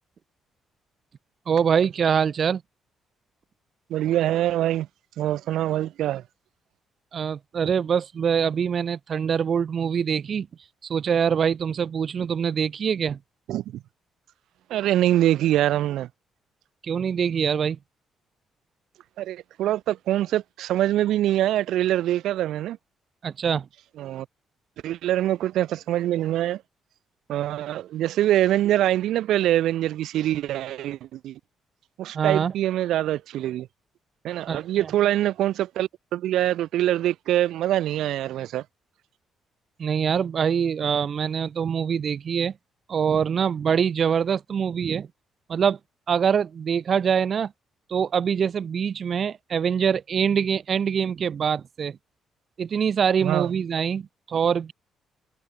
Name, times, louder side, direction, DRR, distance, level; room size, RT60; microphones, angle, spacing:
voice 1, 1.5-2.6 7.1-10.5 10.8-13.2 16.8-17.8 23.2-23.7 32.1-32.5 34.5-34.9 39.8-42.5 42.9-45.1 45.5-45.8 46.1-47.5 47.9-52.0 52.6-54.7, right 7 dB, 50° right, 2.1 m, -24 dB
voice 2, 3.9-4.9 5.2-6.2 13.5-13.6 14.7-16.1 19.2-22.8 24.0-24.2 24.8-26.6 27.3-31.4 32.0-33.7 34.2-38.6 53.2-53.5, right 13 dB, 80° right, 2.9 m, -24 dB
cardioid pair, 90°, 0 cm